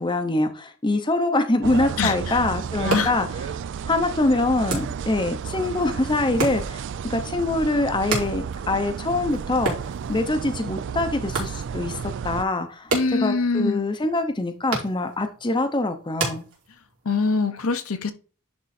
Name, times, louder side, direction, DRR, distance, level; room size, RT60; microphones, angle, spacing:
voice 1, 0.0-3.3 3.9-6.8 7.1-9.8 10.1-12.9 13.2-16.4, left 2 dB, 20° left, 0.7 m, -24 dB
sound 1, 1.6-12.5, right 7 dB, 55° right, 0.3 m, -32 dB
voice 2, 2.0-2.4 2.8-3.1 12.9-13.9 17.0-18.1, left 4 dB, 70° left, 0.8 m, -24 dB
sound 2, 2.6-17.1, right 3 dB, 80° right, 3.5 m, -35 dB
10.5 x 3.7 x 4.2 m
head